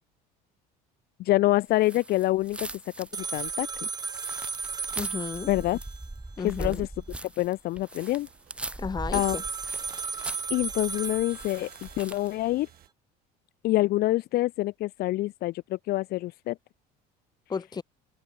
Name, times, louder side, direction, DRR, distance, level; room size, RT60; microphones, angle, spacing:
voice 1, 1.2-2.7 3.0-3.9 5.5-5.8 6.4-8.3 9.1-9.4 10.5-12.7 13.6-16.6, left 17 dB, 60° left, 0.8 m, -26 dB
sound 1, 1.8-12.4, right 2 dB, 5° right, 0.5 m, -40 dB
sound 2, 3.1-6.0 9.1-12.0, right 5 dB, 20° right, 1.2 m, -35 dB
voice 2, 5.0-5.5 6.4-6.9 8.8-9.4 17.5-17.8, left 5 dB, 20° left, 1.4 m, -33 dB
sound 3, 7.9-12.9, right 13 dB, 55° right, 4.8 m, -56 dB
open air
cardioid pair, 120°, 18 cm